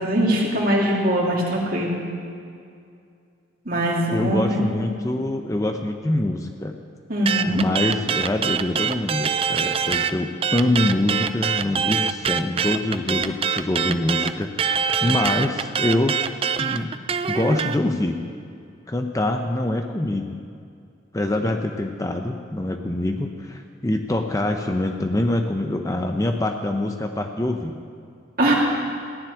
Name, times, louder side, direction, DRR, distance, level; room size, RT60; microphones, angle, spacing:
voice 1, 0.0-2.0 3.6-4.7 7.1-7.6 28.4-28.5, right 1 dB, 45° right, -3 dB, 2.7 m, -21 dB
voice 2, 4.1-6.7 7.5-16.2 16.6-16.9 17.3-18.2 18.9-20.4 21.1-27.8, left 1 dB, 15° left, 4 dB, 0.6 m, -24 dB
sound 1, 7.3-10.1 10.4-17.8, right 7 dB, 30° right, 0.3 m, -24 dB
15.0 x 7.3 x 9.8 m, 2.4 s
head